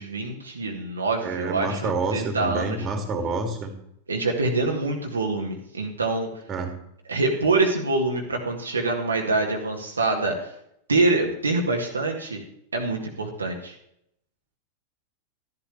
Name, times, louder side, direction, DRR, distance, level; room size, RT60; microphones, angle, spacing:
voice 1, 0.0-2.9 4.1-6.3 7.1-10.5 10.9-12.4 12.7-13.8, right 3 dB, 75° right, 1 dB, 1.7 m, -25 dB
voice 2, 1.2-3.7 6.5-6.7, right 3 dB, 30° right, 5 dB, 2.5 m, -28 dB
13.0 x 11.0 x 3.3 m, 0.74 s
figure-of-eight pair, 90°, 0 cm